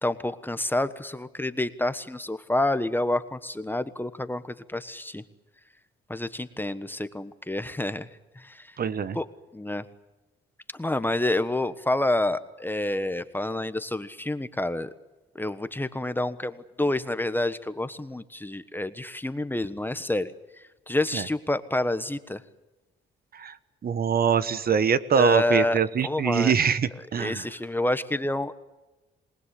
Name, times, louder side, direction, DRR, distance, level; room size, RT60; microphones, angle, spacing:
voice 1, 0.0-5.2 6.1-8.1 8.3-8.8 9.1-9.2 9.5-9.8 10.7-14.9 15.3-22.4 25.1-25.8 26.0-26.5 27.2-28.5, left 1 dB, 10° left, 12 dB, 1.3 m, -28 dB
voice 2, 8.8-9.2 21.1-21.3 23.3-23.6 23.8-27.5, right 7 dB, 50° right, 14 dB, 1.3 m, -24 dB
27.5 x 20.0 x 8.4 m, 1.1 s
cardioid pair, 90°, 20 cm